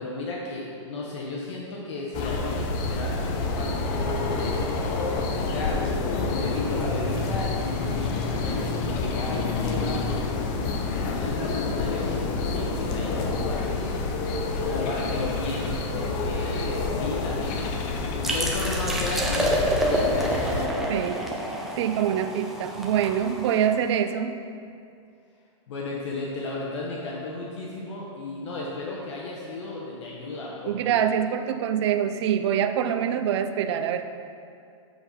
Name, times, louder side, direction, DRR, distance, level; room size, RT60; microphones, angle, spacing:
voice 1, 0.0-5.8 6.2-10.0 11.0-14.3 14.6-21.0 25.7-31.0, left 2 dB, 60° left, -3 dB, 1.3 m, -34 dB
sound 1, 2.1-20.7, left 3 dB, 35° left, 0.7 m, -28 dB
sound 2, 18.2-23.8, equal, ahead, 0.7 m, -28 dB
voice 2, 20.9-21.2 21.8-24.4 30.7-34.0, right 9 dB, 55° right, 8 dB, 0.5 m, -25 dB
7.8 x 4.4 x 5.5 m, 2.4 s
hypercardioid pair, 155°, 17 cm